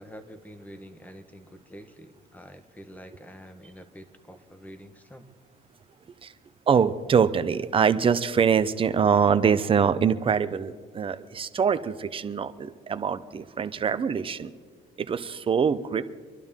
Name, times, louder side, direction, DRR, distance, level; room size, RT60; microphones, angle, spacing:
voice 1, 0.0-5.3, equal, 10° left, 9 dB, 1.3 m, -46 dB
voice 2, 6.7-14.5 15.0-16.1, right 6 dB, 30° right, 11 dB, 0.8 m, -24 dB
26.5 x 11.5 x 3.7 m, 1.5 s
cardioid pair, 110°, 17 cm